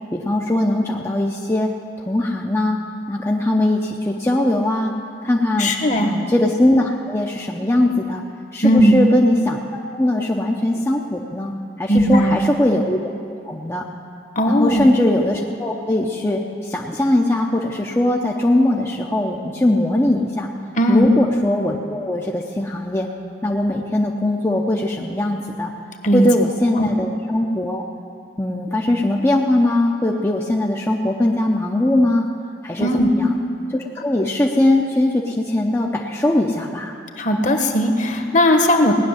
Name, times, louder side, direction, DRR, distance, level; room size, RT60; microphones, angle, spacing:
voice 1, 0.1-1.7 2.1-2.8 3.1-4.9 5.2-5.7 6.0-8.2 8.5-13.0 13.4-13.8 14.5-20.5 20.9-23.1 23.4-25.7 26.1-27.8 28.4-32.3 32.6-32.9 33.2-33.3 33.7-36.9, left 1 dB, 15° left, -1 dB, 0.7 m, -20 dB
voice 2, 5.6-6.1 8.6-9.0 11.9-12.5 14.3-14.9 20.8-21.1 26.0-26.3 26.7-26.9 32.8-33.1 37.2-38.9, equal, 45° left, 4 dB, 1.2 m, -17 dB
17.5 x 6.6 x 9.7 m, 2.5 s
head